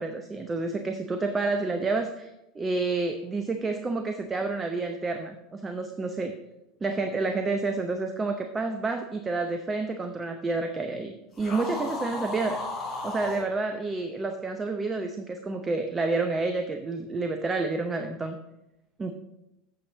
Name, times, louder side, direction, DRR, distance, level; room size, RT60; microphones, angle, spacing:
voice 1, 0.0-2.3 2.5-6.3 6.8-12.6 13.0-18.4 19.0-19.1, right 3 dB, 20° right, 6 dB, 0.7 m, -29 dB
sound 1, 11.3-13.4, left 2 dB, 30° left, 3.5 m, -34 dB
8.6 x 7.1 x 4.0 m, 0.88 s
figure-of-eight pair, 75°, 0 cm